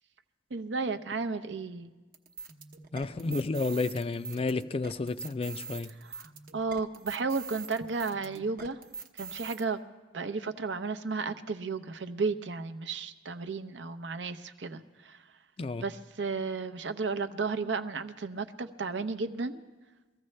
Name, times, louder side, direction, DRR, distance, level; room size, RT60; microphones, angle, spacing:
voice 1, 0.5-1.9 6.0-8.8 9.2-9.8 10.1-15.2 15.8-19.6, right 4 dB, 80° right, 0.7 m, -33 dB
sound 1, 2.1-9.6, right 5 dB, 50° right, 0.9 m, -44 dB
voice 2, 2.9-5.9 15.6-15.8, left 3 dB, 30° left, 0.4 m, -31 dB
23.0 x 14.5 x 3.2 m
head